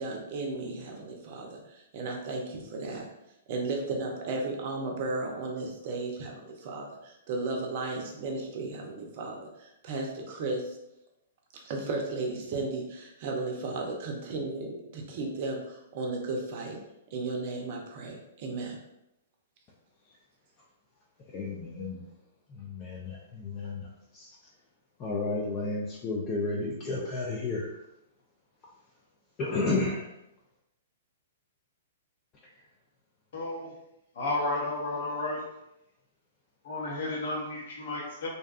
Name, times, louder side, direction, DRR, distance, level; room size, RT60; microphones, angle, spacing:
voice 1, 0.0-3.1 3.5-10.7 11.6-16.8 17.1-18.8, right 3 dB, 50° right, 1 dB, 0.6 m, -34 dB
voice 2, 21.3-22.0 22.5-24.4 25.0-27.8 29.4-30.1, left 3 dB, 30° left, -3 dB, 0.4 m, -32 dB
voice 3, 33.3-33.7 34.2-35.4 36.6-38.3, left 2 dB, 60° left, -4 dB, 0.8 m, -32 dB
2.6 x 2.3 x 2.4 m, 0.86 s
figure-of-eight pair, 110°, 0 cm